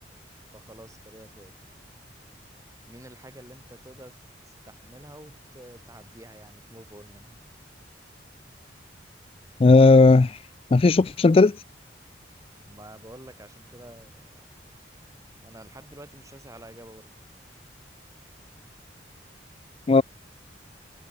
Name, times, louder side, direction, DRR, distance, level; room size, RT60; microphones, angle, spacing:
voice 1, 0.5-1.5 2.9-4.1 4.6-7.4 12.7-14.6 15.4-17.1, right 1 dB, 15° right, 3.2 m, -48 dB
voice 2, 9.6-10.4 10.7-11.6 19.9-20.0, left 3 dB, 30° left, 0.4 m, -15 dB
head